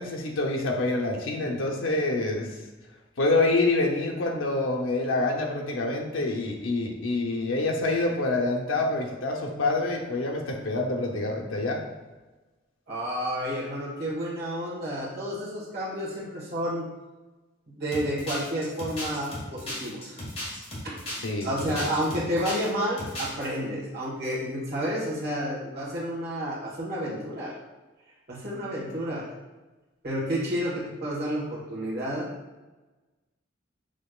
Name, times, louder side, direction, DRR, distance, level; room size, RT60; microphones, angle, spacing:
voice 1, 0.0-2.5 3.2-11.8 21.2-21.9, left 2 dB, 80° left, 1 dB, 0.7 m, -26 dB
voice 2, 12.9-16.9 17.7-20.2 20.8-21.0 21.4-27.5 28.3-29.3 30.0-32.3, equal, 55° right, -5 dB, 1.5 m, -30 dB
sound 1, 17.9-22.7 23.0-23.5, left 1 dB, 30° left, 1.4 m, -35 dB
6.4 x 3.1 x 2.4 m, 1.2 s
head